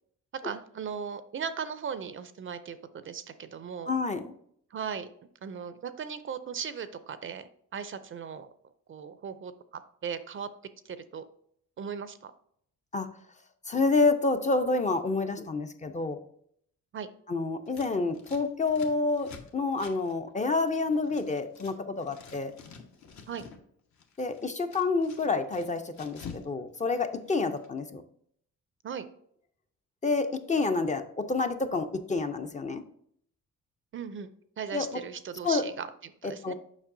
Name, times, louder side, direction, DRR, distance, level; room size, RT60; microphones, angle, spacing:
voice 1, 0.3-3.9 4.7-5.1 5.4-8.5 8.9-10.5 10.8-11.2 11.8-12.3 15.3-15.4 16.9-17.1 23.3-23.5 28.8-29.0 33.9-34.3 34.6-36.5, right 7 dB, 45° right, 12 dB, 0.4 m, -38 dB
voice 2, 3.9-4.3 12.9-13.1 13.7-16.2 17.3-22.5 24.2-28.0 30.0-32.8 34.7-34.9 35.4-35.7 36.2-36.5, left 3 dB, 25° left, 8 dB, 0.5 m, -28 dB
Scissors, 17.7-21.8 22.0-23.6 23.9-26.5 26.7-27.7, left 5 dB, 65° left, 1.0 m, -49 dB
7.2 x 5.4 x 2.6 m, 0.66 s
cardioid pair, 110°, 30 cm